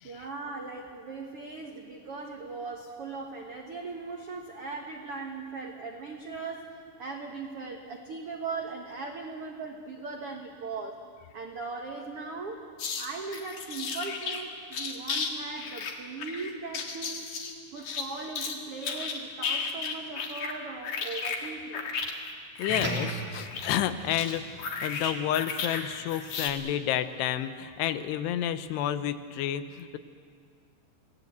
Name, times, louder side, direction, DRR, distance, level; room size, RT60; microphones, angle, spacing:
voice 1, 0.0-11.0 11.3-12.7 13.0-17.3 17.7-21.9, right 4 dB, 80° right, 2 dB, 1.3 m, -39 dB
sound 1, 12.8-13.1 13.3-14.4 14.7-15.3 15.6-18.5 18.8-20.6 20.8-25.8 26.1-26.5, left 5 dB, 50° left, 2.5 m, -34 dB
voice 2, 22.6-30.0, left 11 dB, 80° left, 11 dB, 3.0 m, -30 dB
sound 2, 22.7-27.3, right 2 dB, 45° right, 4.6 m, -40 dB
27.0 x 18.0 x 8.1 m, 2.1 s
omnidirectional pair, 4.8 m